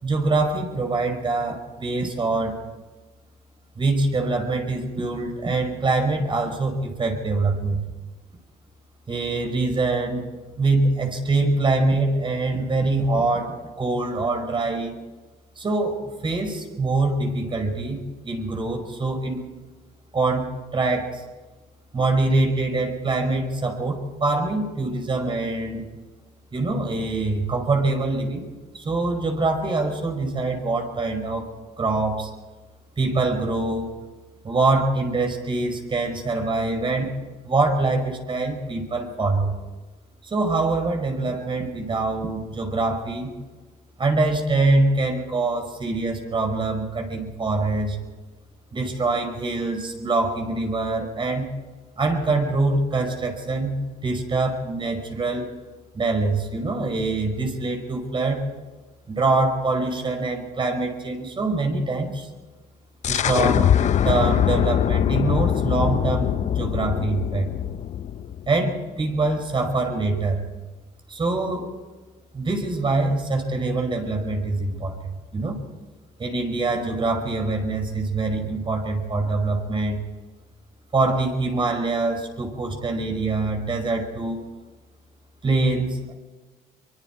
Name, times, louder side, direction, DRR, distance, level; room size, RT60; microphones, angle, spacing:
voice 1, 0.0-2.6 3.8-7.8 9.1-10.2 10.6-15.0 15.6-19.4 20.1-21.2 21.9-25.9 26.5-28.5 28.7-32.3 33.0-33.9 34.4-37.2 37.4-39.6 40.2-43.3 44.0-48.0 48.7-51.5 52.0-55.5 55.9-58.4 59.1-62.3 63.1-63.7 64.0-67.5 68.5-70.4 71.1-71.7 72.3-75.6 76.2-80.0 80.9-84.4 85.4-86.1, right 3 dB, 30° right, 4 dB, 5.4 m, -24 dB
sound 1, 63.0-68.5, left 9 dB, 45° left, 0.7 m, -22 dB
24.5 x 24.0 x 4.7 m, 1.3 s
cardioid pair, 110°, 17 cm